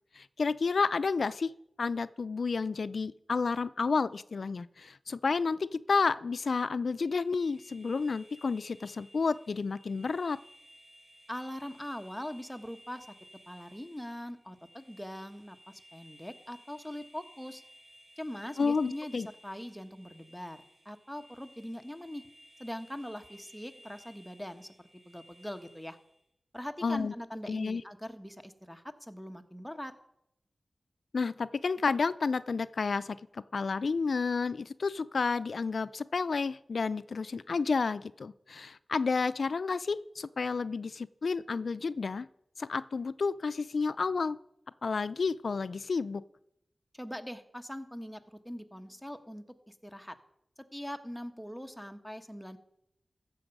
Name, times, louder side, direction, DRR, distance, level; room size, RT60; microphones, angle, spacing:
voice 1, 0.2-1.5 1.8-10.4 18.6-19.3 26.8-27.1 27.5-27.8 31.1-42.3 42.6-44.4 44.8-46.2, left 4 dB, 80° left, 15 dB, 0.3 m, -31 dB
sound 1, 7.0-26.2, equal, 40° right, 4.6 m, -58 dB
voice 2, 11.3-13.1 13.5-17.6 18.2-22.2 22.6-24.7 25.1-26.0 26.5-29.9 46.9-50.1 50.7-52.6, equal, 5° left, 7 dB, 1.1 m, -42 dB
15.0 x 7.0 x 5.3 m, 0.78 s
wide cardioid pair, 60°, 0 cm